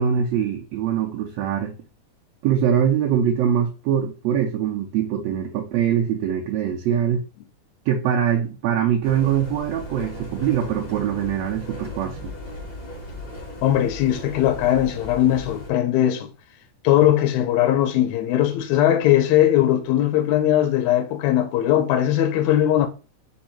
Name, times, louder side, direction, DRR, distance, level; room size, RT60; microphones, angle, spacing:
voice 1, 0.0-1.8 2.4-7.2 7.9-12.3, right 9 dB, 75° right, 1.5 m, -23 dB
sound 1, 9.0-15.7, left 1 dB, 55° left, 1.1 m, -37 dB
voice 2, 13.6-16.3 16.8-22.9, left 12 dB, 80° left, 1.8 m, -19 dB
4.6 x 2.6 x 4.3 m
omnidirectional pair, 3.4 m